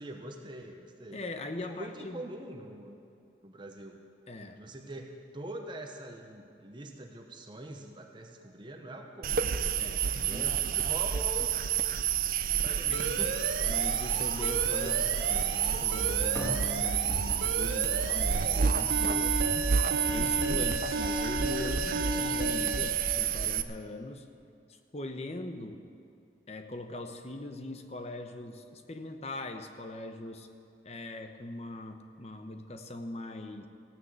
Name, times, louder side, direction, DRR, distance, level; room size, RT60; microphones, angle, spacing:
voice 1, 0.0-1.2 1.6-3.0 3.4-4.0 4.5-9.8 10.3-11.6 12.6-13.5 14.8-15.4, right 1 dB, 25° right, 3 dB, 1.0 m, -43 dB
voice 2, 1.1-2.2 4.3-4.6 9.8-10.5 12.8-13.3 13.7-15.1 15.3-19.4 20.1-24.3 24.7-25.8 26.5-30.5 30.8-33.7, left 1 dB, 35° left, 6 dB, 0.9 m, -41 dB
sound 1, 9.2-23.6, right 8 dB, 50° right, 0.5 m, -29 dB
Alarm, 12.9-22.9, right 2 dB, 75° right, 1.2 m, -34 dB
sound 2, 13.9-18.1 18.4-19.0, equal, 20° left, 2.8 m, -44 dB
15.5 x 9.6 x 8.1 m, 2.6 s
head